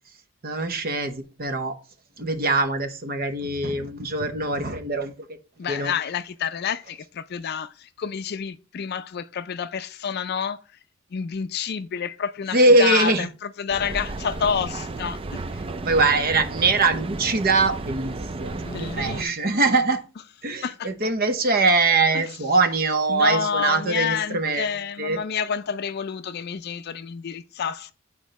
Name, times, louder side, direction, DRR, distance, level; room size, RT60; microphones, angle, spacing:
voice 1, 0.4-1.7 2.2-5.1 5.7-5.9 12.5-13.3 15.9-20.0 20.4-24.7 25.0-25.2, right 3 dB, 50° right, 0.8 m, -22 dB
voice 2, 5.6-10.6 11.1-15.7 18.6-19.7 20.6-20.9 22.1-22.3 23.1-27.9, left 7 dB, 55° left, 0.4 m, -29 dB
Mechanical fan, 13.7-19.2, right 2 dB, 30° right, 0.4 m, -33 dB
8.4 x 4.4 x 4.0 m
head